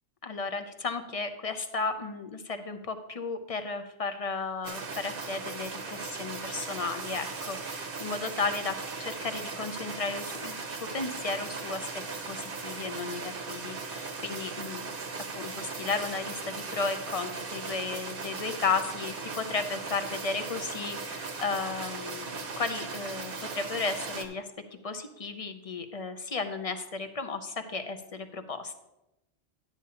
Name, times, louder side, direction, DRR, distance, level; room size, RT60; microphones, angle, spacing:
voice 1, 0.2-10.6 10.9-14.8 15.3-24.5 24.8-28.8, left 4 dB, 50° left, 7 dB, 0.4 m, -34 dB
sound 1, 4.6-24.3, right 4 dB, 55° right, 0.9 m, -38 dB
11.0 x 8.4 x 2.8 m, 0.93 s
omnidirectional pair, 1.2 m